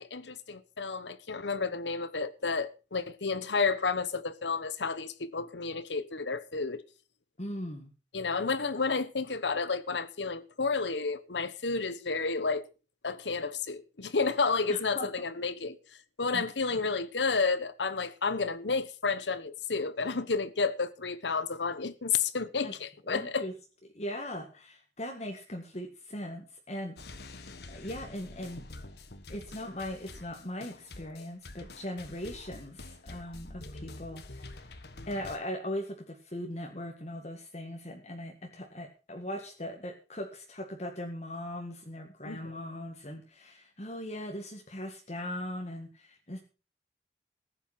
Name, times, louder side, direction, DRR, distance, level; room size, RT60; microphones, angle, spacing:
voice 1, 0.0-6.8 8.1-12.7 13.0-15.8 16.2-23.5 42.2-42.5, left 4 dB, 85° left, 1.1 m, -31 dB
voice 2, 7.4-7.9 14.7-15.1 16.3-16.4 22.6-22.7 23.0-23.5 23.9-26.9 27.3-28.7 29.3-46.4, left 1 dB, 40° left, 1.8 m, -39 dB
sound 1, 27.0-35.4, left 2 dB, 65° left, 1.5 m, -47 dB
15.0 x 9.2 x 5.9 m
head